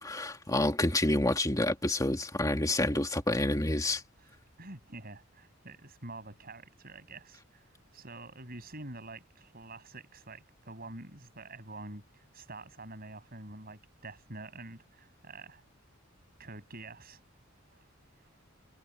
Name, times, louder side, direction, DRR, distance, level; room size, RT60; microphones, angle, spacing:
voice 1, 0.0-4.0, left 1 dB, 15° left, 2.6 m, -28 dB
voice 2, 4.2-7.7 7.9-15.6 16.4-17.2 17.7-17.9 18.2-18.3, right 2 dB, 50° right, 7.8 m, -47 dB
head